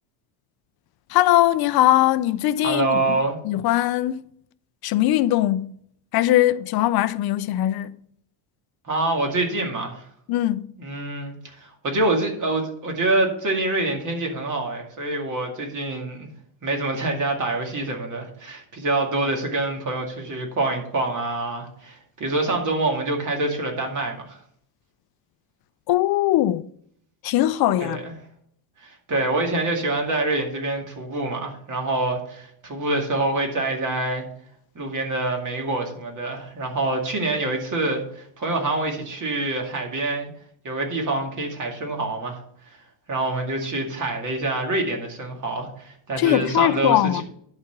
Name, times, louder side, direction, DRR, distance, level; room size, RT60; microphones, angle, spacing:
voice 1, 1.1-3.0 3.4-4.2 4.8-5.7 6.1-8.0 10.3-10.7 25.9-26.7 27.2-28.0 46.2-47.2, left 14 dB, 50° left, 0.5 m, -20 dB
voice 2, 2.6-3.4 8.8-10.1 10.8-16.3 16.6-24.4 27.8-28.1 28.8-34.2 34.8-40.3 40.6-42.4 43.1-47.2, right 2 dB, 35° right, 2.3 m, -26 dB
11.0 x 4.3 x 5.9 m
cardioid pair, 130°, 50 cm